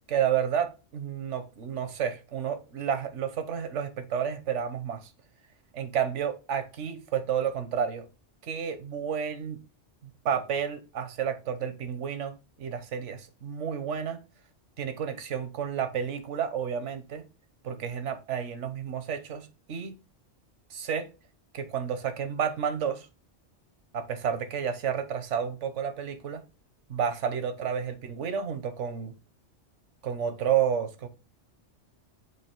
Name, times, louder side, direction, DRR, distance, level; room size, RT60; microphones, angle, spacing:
voice 1, 0.1-5.1 5.7-8.1 8.4-9.6 10.2-14.2 14.8-17.2 17.6-20.0 20.7-21.1 21.5-23.1 23.9-26.4 26.9-29.1 30.0-31.1, right 8 dB, 80° right, 1.3 m, -31 dB
7.9 x 2.7 x 4.4 m
omnidirectional pair, 1.2 m